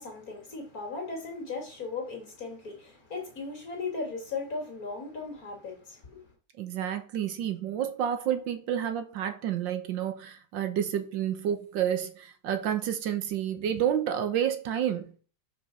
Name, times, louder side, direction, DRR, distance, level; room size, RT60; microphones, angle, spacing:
voice 1, 0.0-6.3, left 4 dB, 45° left, 2.9 m, -37 dB
voice 2, 6.6-15.1, right 9 dB, 75° right, 1.6 m, -30 dB
5.5 x 5.1 x 6.1 m
omnidirectional pair, 2.1 m